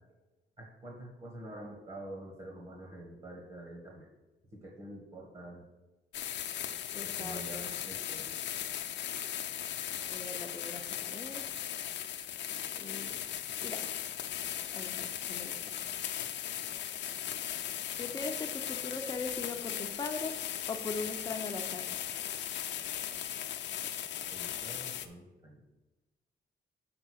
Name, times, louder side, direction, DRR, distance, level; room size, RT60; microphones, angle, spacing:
voice 1, 0.6-4.1 4.5-5.6 7.0-8.6 24.3-25.6, right 1 dB, 30° right, -2 dB, 1.5 m, -47 dB
sound 1, 6.1-25.1, left 10 dB, 85° left, 0.6 m, -38 dB
voice 2, 6.9-7.7 10.1-11.4 12.8-13.1 13.6-13.8 14.7-15.5 18.0-20.4 20.7-21.9, left 3 dB, 20° left, 4 dB, 0.7 m, -40 dB
6.8 x 5.2 x 6.3 m, 1.1 s
wide cardioid pair, 160°, 18 cm